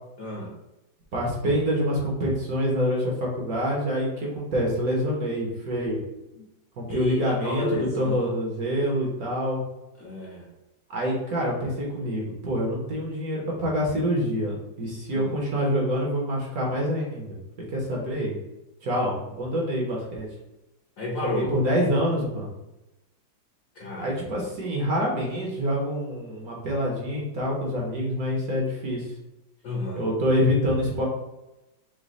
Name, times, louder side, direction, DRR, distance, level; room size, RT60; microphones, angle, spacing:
voice 1, 0.2-0.5 6.9-8.3 10.0-10.4 15.1-15.3 21.0-21.5 23.8-24.2 29.6-30.0, left 2 dB, 55° left, -4 dB, 1.0 m, -31 dB
voice 2, 1.1-6.0 6.8-9.6 10.9-17.4 17.7-18.3 18.8-20.3 21.2-22.5 24.0-29.1 29.9-31.0, equal, 55° right, -2 dB, 1.3 m, -26 dB
5.1 x 2.2 x 3.8 m, 0.97 s
omnidirectional pair, 2.1 m